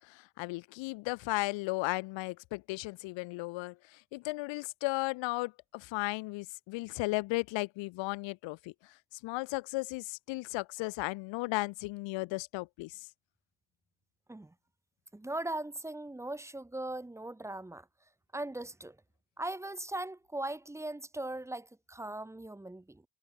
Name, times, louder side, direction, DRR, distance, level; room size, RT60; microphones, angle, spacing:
voice 1, 0.1-8.7 9.2-13.1, left 22 dB, 75° left, 1.6 m, -35 dB
voice 2, 15.1-17.9 18.3-19.0 19.4-23.0, right 1 dB, 5° right, 2.4 m, -39 dB
cardioid pair, 170°, 45 cm